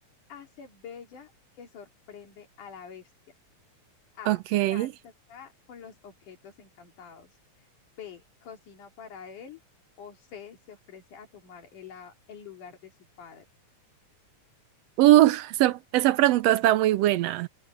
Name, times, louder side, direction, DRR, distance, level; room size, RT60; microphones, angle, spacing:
voice 1, 0.3-1.3 1.6-3.0 4.2-4.4 4.7-7.3 8.0-9.6 10.0-12.9 13.2-13.4, left 7 dB, 80° left, 4.5 m, -46 dB
voice 2, 4.3-4.9 15.0-17.5, right 15 dB, 80° right, 1.5 m, -21 dB
omnidirectional pair, 3.5 m